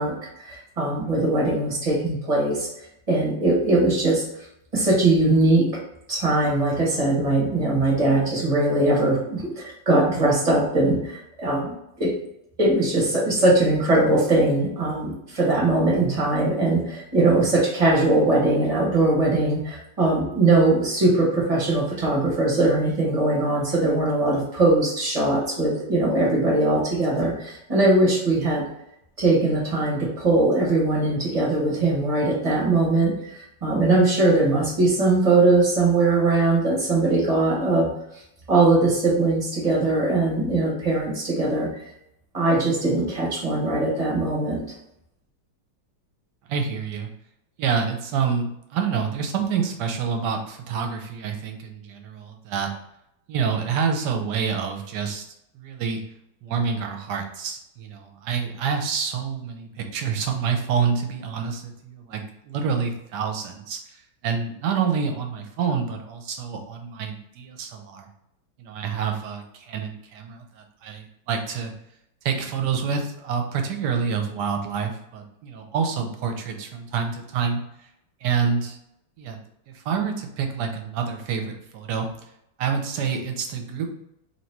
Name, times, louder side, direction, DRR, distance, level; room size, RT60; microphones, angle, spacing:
voice 1, 0.0-2.7 3.1-4.2 4.7-5.7 6.1-12.1 12.6-28.7 29.2-37.9 38.5-41.7 42.3-44.7, right 2 dB, 25° right, -3 dB, 0.8 m, -21 dB
voice 2, 46.5-47.1 47.6-52.7 53.3-55.2 55.5-56.0 56.4-68.1 68.6-71.7 72.2-77.6 78.2-78.8 79.2-79.4 79.7-82.1 82.6-83.9, right 6 dB, 70° right, 4 dB, 1.1 m, -27 dB
2.9 x 2.8 x 4.4 m, 0.78 s
omnidirectional pair, 2.1 m